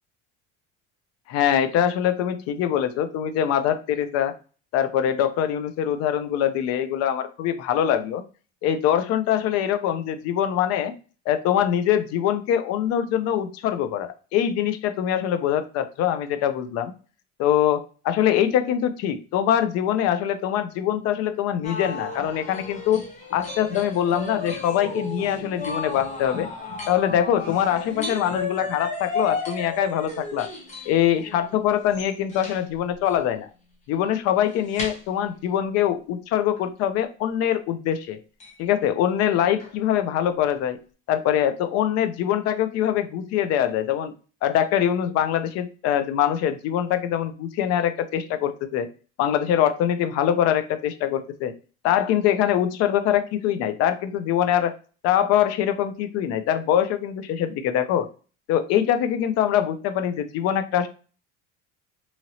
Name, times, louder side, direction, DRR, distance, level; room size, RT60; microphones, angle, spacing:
voice 1, 1.3-4.3 4.7-8.2 8.6-10.9 11.3-16.9 17.4-23.0 23.3-26.5 26.9-30.5 30.9-33.5 33.9-38.2 38.6-40.8 41.1-44.1 44.4-48.9 49.2-51.5 51.8-54.7 55.0-58.1 58.5-60.9, left 10 dB, 50° left, 10 dB, 0.4 m, -23 dB
sound 1, 21.6-32.6 33.1-33.2 34.5-35.0 36.6-36.7 38.4-38.6 39.6-39.7 40.5-40.6, left 3 dB, 20° left, 0.8 m, -34 dB
2.8 x 2.7 x 2.8 m, 0.37 s
cardioid pair, 155°, 32 cm